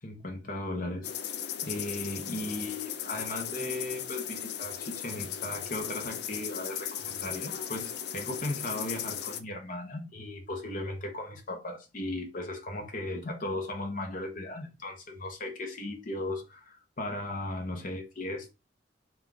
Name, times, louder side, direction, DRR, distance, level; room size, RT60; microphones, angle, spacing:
voice 1, 0.0-1.1 1.6-18.5, left 2 dB, 50° left, 0.9 m, -36 dB
sound 1, 1.0-9.4, left 9 dB, 65° left, 0.5 m, -37 dB
4.4 x 2.4 x 3.7 m
head